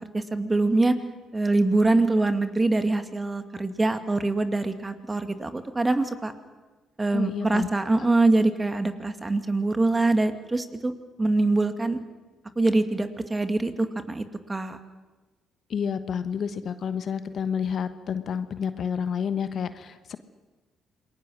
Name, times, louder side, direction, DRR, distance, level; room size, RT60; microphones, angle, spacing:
voice 1, 0.1-0.9 1.3-6.3 7.0-10.9 11.2-12.0 12.6-14.2 14.5-14.8, right 2 dB, 20° right, 8 dB, 2.2 m, -24 dB
voice 2, 7.1-7.7 15.7-20.2, left 7 dB, 55° left, 11 dB, 1.1 m, -29 dB
28.0 x 21.0 x 6.4 m, 1.2 s
hypercardioid pair, 45°, 0 cm